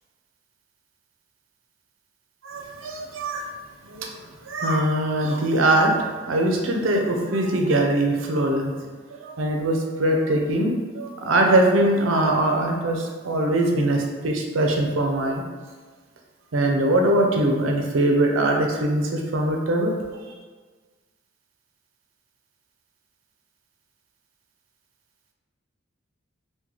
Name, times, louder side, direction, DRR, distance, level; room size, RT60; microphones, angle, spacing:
voice 1, 2.4-3.5 3.8-4.1 4.5-8.7 9.2-15.4 16.5-19.9, right 1 dB, 80° right, 1 dB, 0.5 m, -22 dB
3.7 x 2.2 x 3.0 m, 1.5 s
head